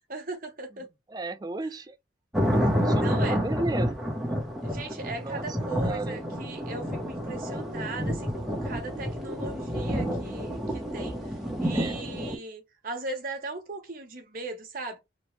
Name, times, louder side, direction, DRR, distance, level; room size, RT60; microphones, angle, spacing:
voice 1, 0.1-0.9 2.9-3.4 4.6-11.2 11.6-15.0, right 2 dB, 50° right, 0.9 m, -38 dB
voice 2, 1.1-2.0 2.5-4.0 4.2-4.5 5.2-5.5 5.8-6.2 11.7-12.1, right 2 dB, 20° right, 0.3 m, -34 dB
sound 1, 2.3-12.4, equal, ahead, 0.7 m, -29 dB
3.0 x 2.1 x 3.0 m
head